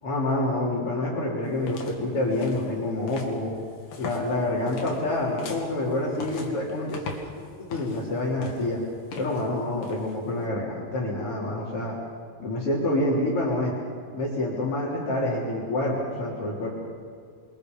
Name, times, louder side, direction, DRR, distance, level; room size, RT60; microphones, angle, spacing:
voice 1, 0.0-3.5 4.0-7.3 7.7-8.8 9.2-12.0 12.4-13.7 14.1-16.7, left 1 dB, 35° left, -7 dB, 4.0 m, -27 dB
sound 1, 1.4-10.5, left 5 dB, 65° left, 3.6 m, -42 dB
28.5 x 23.0 x 5.4 m, 2.1 s
omnidirectional pair, 4.4 m